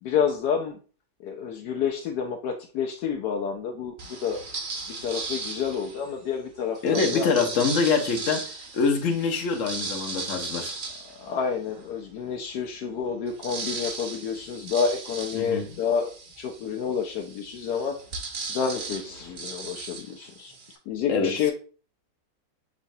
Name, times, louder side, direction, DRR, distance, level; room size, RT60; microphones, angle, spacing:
voice 1, 0.0-0.8 1.2-4.4 5.0-7.5 11.2-18.0 18.5-20.5 20.9-21.5, left 6 dB, 75° left, 1.1 m, -29 dB
sound 1, 4.0-6.1 6.7-11.9 12.4-12.5 12.7-20.8, right 4 dB, 55° right, 0.5 m, -37 dB
voice 2, 6.8-10.7 15.3-15.7 21.1-21.3, left 5 dB, 55° left, 1.1 m, -25 dB
6.0 x 3.1 x 2.6 m
omnidirectional pair, 1.8 m